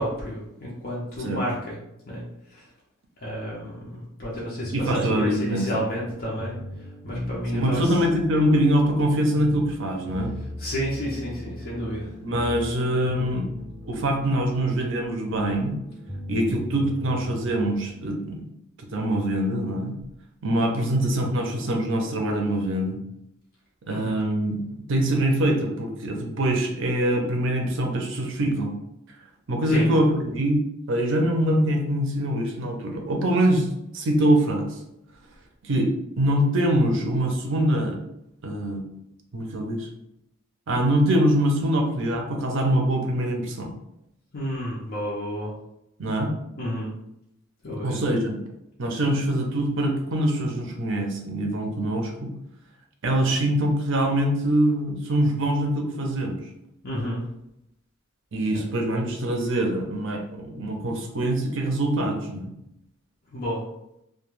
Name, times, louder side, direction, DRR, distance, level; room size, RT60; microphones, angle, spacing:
voice 1, 0.0-1.8 2.0-2.2 2.5-2.7 3.2-6.6 7.0-8.0 10.6-12.1 23.9-24.2 29.7-29.9 44.3-45.5 46.6-46.9 47.6-48.0 56.8-57.2 58.5-58.6 63.3-63.6, equal, 45° left, -6 dB, 0.6 m, -31 dB
sound 1, 4.6-17.9, equal, 5° right, 1.2 m, -38 dB
voice 2, 4.7-5.7 7.5-10.3 12.2-13.5 13.9-15.8 16.3-18.5 18.9-19.9 20.4-23.0 23.9-24.6 24.9-28.7 29.5-30.6 30.9-33.7 33.9-34.7 35.6-35.9 36.2-38.0 38.4-38.8 39.3-39.9 40.7-43.7 46.0-46.3 47.8-48.3 48.8-52.3 53.0-56.4 58.3-62.5, right 1 dB, 65° right, 2 dB, 0.5 m, -24 dB
2.2 x 2.2 x 3.0 m, 0.81 s
head